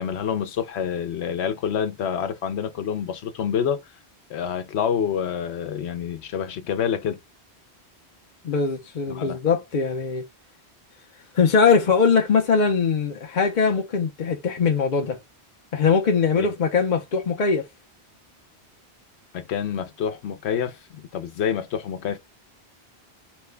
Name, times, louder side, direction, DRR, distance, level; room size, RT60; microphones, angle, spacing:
voice 1, 0.0-3.8 4.3-7.2 9.1-9.4 16.4-16.5 19.3-22.2, left 8 dB, 80° left, 0.9 m, -27 dB
voice 2, 8.4-10.2 11.3-15.2 15.7-17.7, left 5 dB, 50° left, 0.6 m, -21 dB
3.1 x 2.2 x 3.2 m
omnidirectional pair, 1.1 m